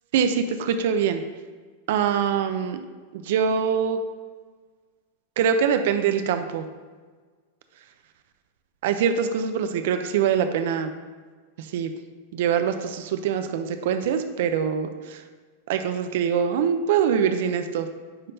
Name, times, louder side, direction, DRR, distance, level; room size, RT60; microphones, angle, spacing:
voice 1, 0.1-1.2 1.9-2.8 3.1-4.0 5.4-6.7 8.8-10.9 11.6-11.9 12.3-15.2 15.7-17.9, right 7 dB, 60° right, 8 dB, 0.6 m, -24 dB
9.5 x 5.6 x 2.7 m, 1.5 s
supercardioid pair, 170°, 0 cm